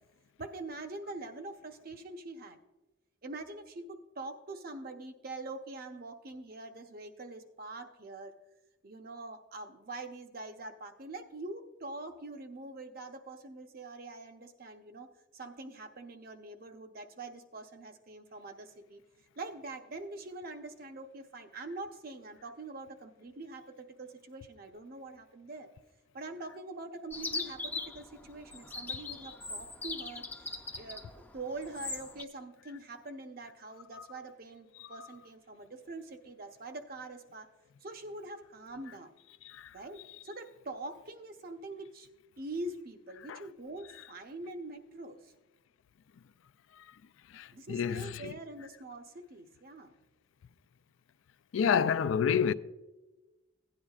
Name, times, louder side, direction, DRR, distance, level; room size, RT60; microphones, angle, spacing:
voice 1, 0.4-2.6 3.2-8.3 8.8-19.0 19.4-25.7 26.1-30.2 30.8-37.5 37.8-39.1 39.7-42.1 42.4-45.3 47.5-49.9, right 2 dB, 50° right, 0.8 m, -44 dB
Chirp tweet, 27.1-32.2, left 3 dB, 10° left, 0.5 m, -40 dB
voice 2, 47.3-48.3 51.5-52.5, left 7 dB, 75° left, 0.4 m, -29 dB
16.0 x 9.9 x 2.4 m
head